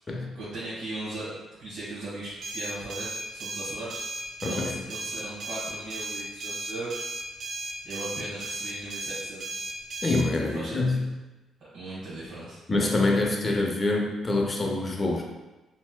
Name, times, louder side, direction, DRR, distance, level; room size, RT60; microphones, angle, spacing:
voice 1, 0.3-1.3 1.6-4.0 4.4-7.1 7.6-9.6 10.3-11.0 11.7-12.6, right 2 dB, 75° right, -10 dB, 1.3 m, -38 dB
sound 1, 2.4-10.3, right 2 dB, 55° right, 0.5 m, -35 dB
voice 2, 4.4-4.8 10.0-11.1 12.7-15.2, left 2 dB, 30° left, 0 dB, 0.5 m, -25 dB
4.2 x 2.1 x 2.2 m, 1.1 s
cardioid pair, 90°, 0 cm